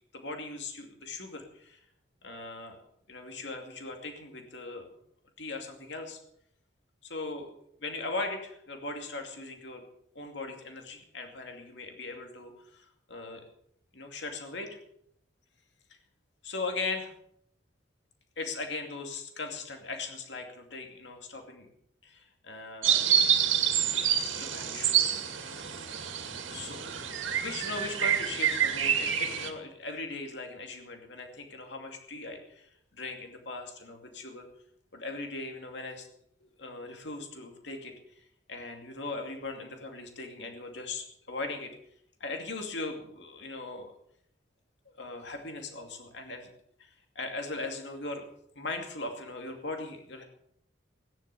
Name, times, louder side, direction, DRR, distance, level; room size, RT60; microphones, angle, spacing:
voice 1, 0.0-1.8 2.2-2.8 3.1-4.9 5.4-6.2 7.0-7.5 7.8-9.8 10.1-13.4 13.9-14.7 16.4-17.1 18.4-21.7 22.0-23.0 23.6-23.7 24.4-25.2 25.4-25.5 26.5-26.9 27.4-34.5 34.9-36.1 36.4-37.9 38.5-41.7 42.2-43.9 45.0-46.5 46.8-48.2 48.5-50.2, left 3 dB, 65° left, 4 dB, 2.5 m, -39 dB
sound 1, 22.8-29.5, right 9 dB, 85° right, 2.2 m, -27 dB
16.5 x 10.5 x 6.9 m, 0.71 s
head